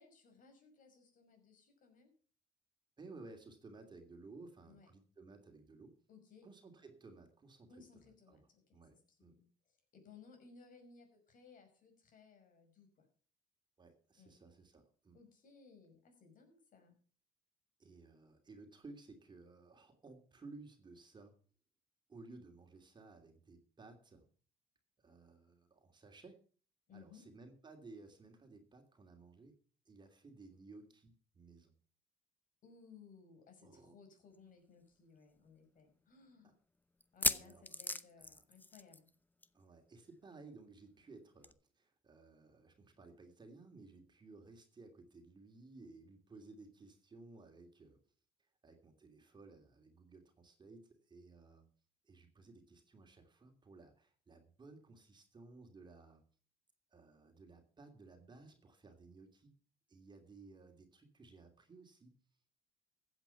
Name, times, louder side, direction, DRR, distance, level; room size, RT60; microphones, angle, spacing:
voice 1, 0.0-2.1 4.7-4.9 6.1-6.5 7.7-8.6 8.9-13.1 14.2-14.3 15.1-17.0 26.9-27.2 32.6-36.6 37.1-39.1, left 5 dB, 50° left, 5 dB, 5.7 m, -61 dB
voice 2, 3.0-6.0 6.4-7.8 8.3-8.4 8.7-9.3 13.8-15.2 17.8-21.3 22.1-24.3 25.0-26.4 26.9-29.5 29.9-31.7 33.6-34.0 36.4-36.5 37.3-37.6 38.2-38.3 39.5-48.0 48.6-51.7 52.0-56.2 56.9-59.5 59.9-62.1, right 3 dB, 25° right, 4 dB, 2.9 m, -57 dB
sound 1, 34.3-34.4 34.7-34.8 35.4-35.5 37.0-39.1 39.4-39.6 39.9-40.0 41.4-41.5, left 2 dB, 10° left, 0.7 m, -37 dB
15.0 x 8.4 x 5.8 m, 0.41 s
cardioid pair, 110°, 17 cm